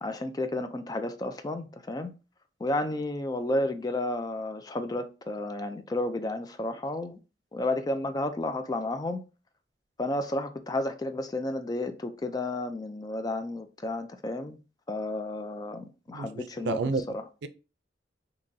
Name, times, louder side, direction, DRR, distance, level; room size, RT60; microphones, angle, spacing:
voice 1, 0.0-2.1 2.6-7.2 7.5-9.2 10.0-14.6 14.9-16.8 17.1-17.2, left 2 dB, 20° left, 0.3 m, -32 dB
voice 2, 16.1-17.0 17.4-17.5, right 4 dB, 85° right, 0.4 m, -30 dB
3.8 x 2.9 x 2.7 m
head